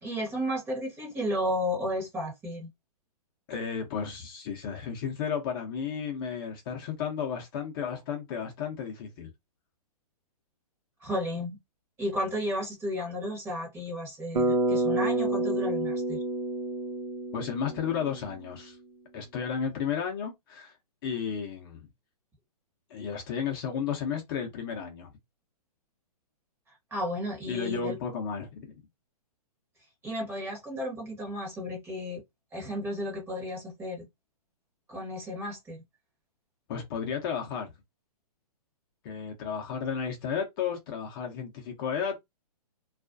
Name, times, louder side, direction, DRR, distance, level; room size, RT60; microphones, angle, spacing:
voice 1, 0.0-2.7 11.0-11.6 12.0-16.2 26.9-28.0 30.0-32.2 32.5-34.1 34.9-35.8, equal, 10° right, 0.9 m, -33 dB
voice 2, 3.5-9.3 17.3-18.8 19.1-20.7 21.0-21.9 22.9-25.1 27.5-28.7 36.7-37.7 39.0-42.2, left 7 dB, 35° left, 0.6 m, -33 dB
Bass guitar, 14.3-18.5, right 2 dB, 75° right, 0.7 m, -29 dB
2.4 x 2.1 x 2.5 m
hypercardioid pair, 140°, 20 cm